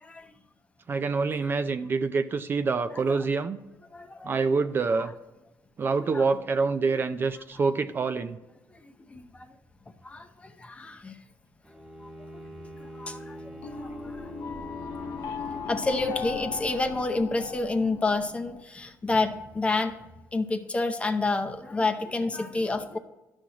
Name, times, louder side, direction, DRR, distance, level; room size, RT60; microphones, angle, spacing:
voice 1, 0.9-3.6 4.2-5.1 5.8-8.4, right 4 dB, 35° right, 10 dB, 0.4 m, -26 dB
voice 2, 3.9-4.3 6.1-6.2 8.8-9.3 10.0-11.1 13.0-13.4 13.7-14.3 15.7-19.9 20.3-23.0, left 3 dB, 20° left, 7 dB, 0.7 m, -29 dB
Bowed string instrument, 11.6-16.5, right 1 dB, 5° right, 1.4 m, -44 dB
sound 1, 13.6-18.6, left 6 dB, 65° left, 0.7 m, -37 dB
11.5 x 6.3 x 2.9 m, 1.0 s
cardioid pair, 110°, 6 cm